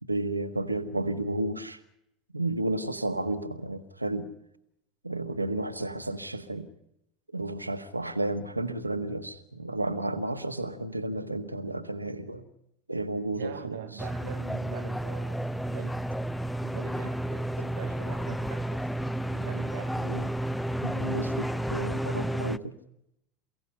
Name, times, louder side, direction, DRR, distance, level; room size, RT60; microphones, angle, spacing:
voice 1, 0.0-1.8 2.3-4.3 5.0-6.7 7.3-12.5 12.9-14.0 20.0-20.3 20.8-22.8, right 2 dB, 90° right, 1.5 m, -32 dB
voice 2, 13.4-16.1 16.6-20.2, right 13 dB, 65° right, 0.8 m, -43 dB
sound 1, 14.0-22.6, right 1 dB, 5° left, 0.8 m, -31 dB
28.5 x 17.0 x 5.6 m
figure-of-eight pair, 75°, 0 cm